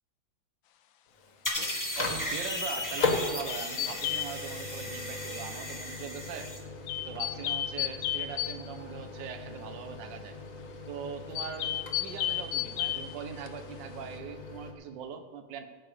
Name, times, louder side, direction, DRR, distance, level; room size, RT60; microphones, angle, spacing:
Microwave oven, 1.1-14.7, left 3 dB, 45° left, 1.8 m, -39 dB
sound 1, 1.4-6.6, left 1 dB, 10° left, 1.4 m, -36 dB
voice 1, 2.0-6.5 7.0-10.3 10.9-15.6, right 7 dB, 65° right, 8 dB, 1.6 m, -41 dB
sound 2, 3.5-4.3 6.9-8.5 11.4-13.1 13.5-13.6, left 12 dB, 75° left, 1.4 m, -32 dB
16.5 x 7.8 x 5.0 m, 1.4 s
omnidirectional pair, 2.3 m